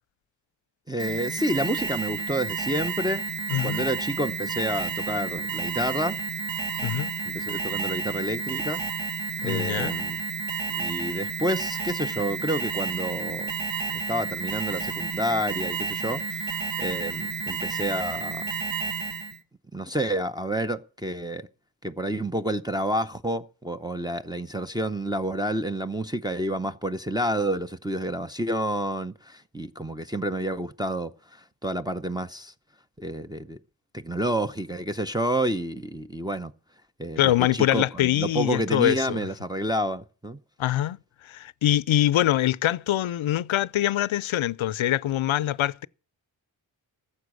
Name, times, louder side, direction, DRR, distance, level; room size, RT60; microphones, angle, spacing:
voice 1, 0.9-3.2 3.6-6.2 7.3-8.8 9.4-10.2 10.7-13.5 13.9-16.2 16.8-18.4 19.7-21.5 21.8-32.5 33.0-33.6 33.9-36.5 37.0-40.4, right 1 dB, 10° right, 0.6 m, -29 dB
Alarm, 1.0-19.4, right 5 dB, 70° right, 1.6 m, -31 dB
voice 2, 3.5-3.9 6.8-7.1 9.4-10.1 37.2-39.2 40.6-45.9, left 13 dB, 85° left, 0.5 m, -24 dB
14.5 x 7.1 x 6.3 m
wide cardioid pair, 100°, 46 cm